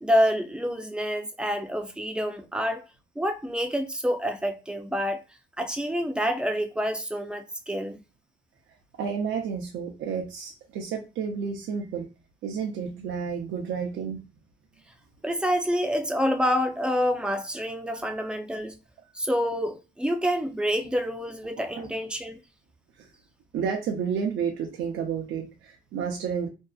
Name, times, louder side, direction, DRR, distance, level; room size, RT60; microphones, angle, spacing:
voice 1, 0.0-2.8 3.2-5.2 5.6-8.0 15.2-18.8 19.1-22.4, equal, 5° right, 0.5 m, -27 dB
voice 2, 9.0-12.1 12.4-14.2 17.9-18.3 21.8-21.9 23.0-23.1 23.5-26.5, right 6 dB, 75° right, 0.6 m, -31 dB
2.6 x 2.3 x 2.3 m
cardioid pair, 90°, 20 cm